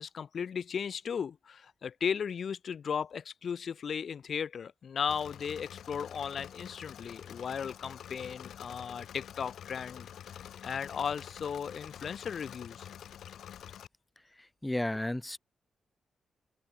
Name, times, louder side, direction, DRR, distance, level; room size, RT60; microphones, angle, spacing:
voice 1, 0.0-10.1 10.6-12.9, left 7 dB, 50° left, 2.5 m, -36 dB
Engine / Mechanisms, 5.1-13.9, left 9 dB, 85° left, 6.3 m, -47 dB
voice 2, 14.4-15.4, left 1 dB, 10° left, 1.4 m, -33 dB
wide cardioid pair, 155°, 0 cm